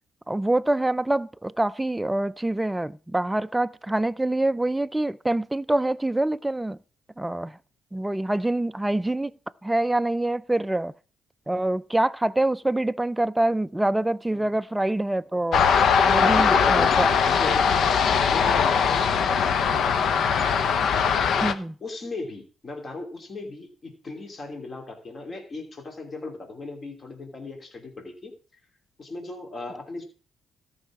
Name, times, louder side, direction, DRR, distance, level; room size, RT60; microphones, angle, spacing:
voice 1, 0.3-6.8 7.2-7.6 7.9-10.9 11.5-15.6 16.1-17.1 21.4-21.8, right 1 dB, 10° right, 0.4 m, -25 dB
sound 1, 15.5-21.5, left 6 dB, 65° left, 0.9 m, -21 dB
voice 2, 15.9-17.9 18.2-20.5 21.4-28.6 29.0-30.0, left 3 dB, 40° left, 2.9 m, -38 dB
13.5 x 5.5 x 6.1 m
cardioid pair, 90°, 0 cm